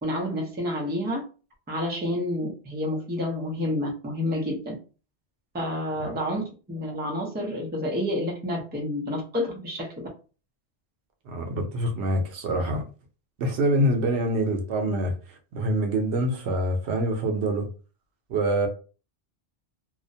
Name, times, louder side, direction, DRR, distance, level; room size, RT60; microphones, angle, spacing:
voice 1, 0.0-1.2 1.7-4.8 5.5-10.1, left 1 dB, 15° right, 0.4 m, -29 dB
voice 2, 11.3-12.8 13.4-17.7 18.3-18.7, right 1 dB, 80° right, 0.9 m, -25 dB
2.4 x 2.1 x 2.6 m
omnidirectional pair, 1.1 m